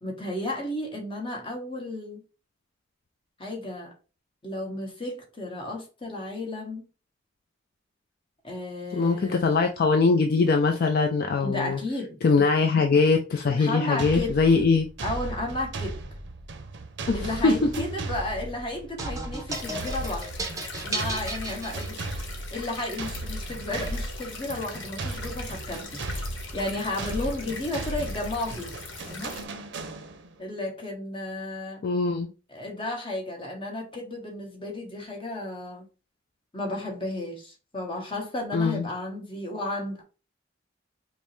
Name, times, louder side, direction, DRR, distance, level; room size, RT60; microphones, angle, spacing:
voice 1, 0.0-2.2 3.4-3.9 4.4-6.9 8.4-9.6 11.4-12.2 13.6-14.4 15.0-16.0 17.1-20.3 20.8-22.0 22.5-28.7 29.0-29.3 30.4-31.8 32.5-35.9 36.5-40.0, left 1 dB, 25° left, 1.1 m, -33 dB
voice 2, 8.9-11.8 12.2-14.9 17.1-17.5 31.8-32.3 38.5-38.8, left 4 dB, 50° left, 0.4 m, -22 dB
sound 1, 14.0-30.4, right 2 dB, 60° right, 0.5 m, -36 dB
sound 2, 19.0-22.4, right 2 dB, 15° right, 0.6 m, -35 dB
sound 3, 19.5-29.4, left 4 dB, 75° left, 0.9 m, -41 dB
5.2 x 2.0 x 3.1 m
head